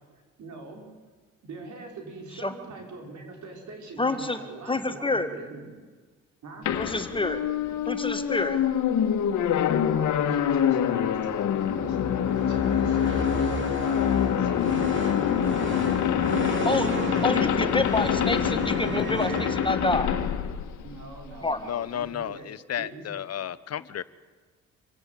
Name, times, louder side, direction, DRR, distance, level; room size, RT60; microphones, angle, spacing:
voice 1, 0.4-0.9 1.4-5.7 6.4-6.7 9.9-12.0 12.4-15.4 17.3-17.5 20.8-22.5 22.8-23.2, right 3 dB, 70° right, 2 dB, 5.7 m, -43 dB
voice 2, 4.0-4.4 4.7-5.3 6.8-7.4 7.9-8.6 16.7-16.9 17.2-20.1 21.4-21.6, left 2 dB, 15° left, 8 dB, 1.7 m, -27 dB
sound 1, 6.7-21.4, left 9 dB, 75° left, 1.6 m, -25 dB
sound 2, 11.6-20.2, right 4 dB, 40° right, 2.4 m, -35 dB
voice 3, 21.6-24.0, left 10 dB, 55° left, 16 dB, 0.9 m, -33 dB
26.5 x 16.5 x 8.6 m, 1.4 s
cardioid pair, 90°, 30 cm